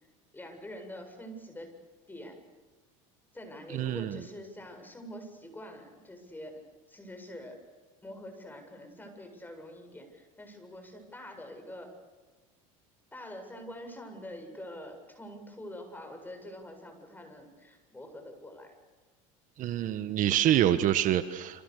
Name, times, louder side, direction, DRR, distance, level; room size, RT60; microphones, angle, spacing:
voice 1, 0.3-1.7 2.1-2.4 3.3-6.6 6.9-7.6 8.0-11.9 13.1-18.7, equal, 10° left, 5 dB, 7.9 m, -45 dB
voice 2, 3.7-4.2 19.6-21.6, right 12 dB, 50° right, 11 dB, 1.5 m, -26 dB
29.0 x 27.5 x 6.8 m, 1.3 s
supercardioid pair, 95°, 17 cm